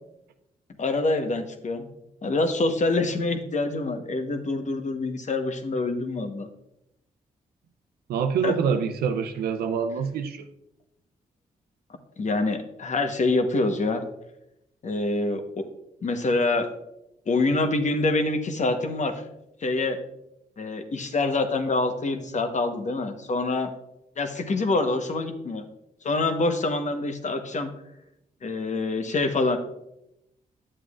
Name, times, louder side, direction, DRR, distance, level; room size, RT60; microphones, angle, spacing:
voice 1, 0.8-1.8 2.2-6.5 8.4-8.5 12.2-14.0 14.8-15.4 16.0-16.7 17.3-19.2 19.6-20.0 20.6-23.7 24.2-25.6 26.0-27.7 28.4-29.6, left 2 dB, 50° left, 7 dB, 1.1 m, -25 dB
voice 2, 8.1-10.5, right 6 dB, 85° right, 9 dB, 0.6 m, -26 dB
9.8 x 7.8 x 2.4 m, 0.85 s
supercardioid pair, 50°, 16 cm